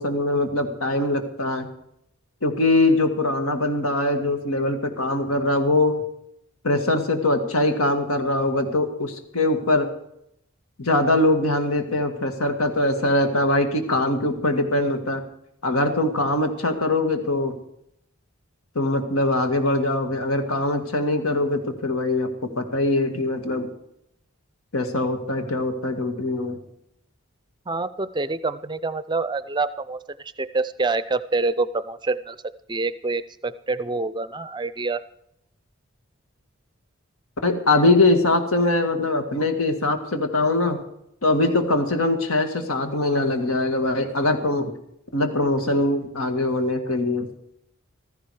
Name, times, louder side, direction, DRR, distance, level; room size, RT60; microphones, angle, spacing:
voice 1, 0.0-1.7 2.4-6.0 6.6-9.9 10.8-15.2 15.6-17.6 18.8-22.3 22.6-23.7 24.7-26.6 37.4-40.8 41.2-44.7 45.1-47.3, left 2 dB, 90° left, 6 dB, 1.8 m, -22 dB
voice 2, 27.7-32.4 32.7-35.0, right 3 dB, 20° right, 15 dB, 0.4 m, -26 dB
15.0 x 14.0 x 4.8 m, 0.77 s
head